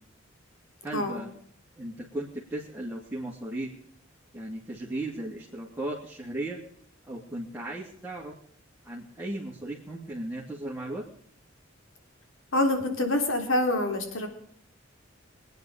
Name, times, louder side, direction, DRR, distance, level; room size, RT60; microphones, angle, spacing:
voice 1, 0.8-1.3 1.8-3.7 4.3-6.6 7.1-8.4 8.8-11.1, right 1 dB, 10° right, -5 dB, 2.7 m, -36 dB
voice 2, 12.5-14.3, left 1 dB, 80° left, 5 dB, 3.4 m, -26 dB
24.5 x 9.7 x 5.0 m, 0.64 s
head